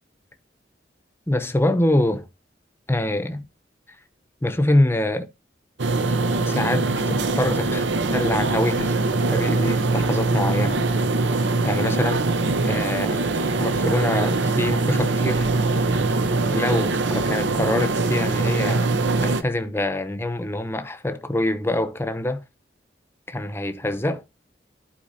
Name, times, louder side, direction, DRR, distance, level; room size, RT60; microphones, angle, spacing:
voice 1, 1.3-2.3 2.9-3.5 4.4-5.3 6.4-7.9 8.1-8.9 9.3-10.9 11.6-12.2 12.6-15.5 16.5-18.9 19.2-22.4 23.3-24.2, left 1 dB, 15° left, 0.7 m, -25 dB
sound 1, 5.8-19.4, right 3 dB, 85° right, 0.8 m, -22 dB
11.5 x 4.4 x 2.7 m
head